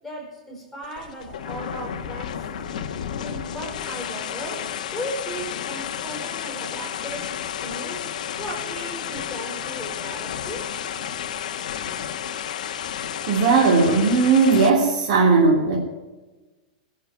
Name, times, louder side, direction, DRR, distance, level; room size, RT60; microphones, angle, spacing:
voice 1, 0.0-2.5 3.2-10.7, equal, 5° right, -2 dB, 4.5 m, -36 dB
sound 1, 0.8-14.7, left 9 dB, 80° left, 1.3 m, -32 dB
voice 2, 13.3-15.8, right 4 dB, 55° right, -3 dB, 3.1 m, -17 dB
20.0 x 6.7 x 8.3 m, 1.2 s
supercardioid pair, 175°, 4 cm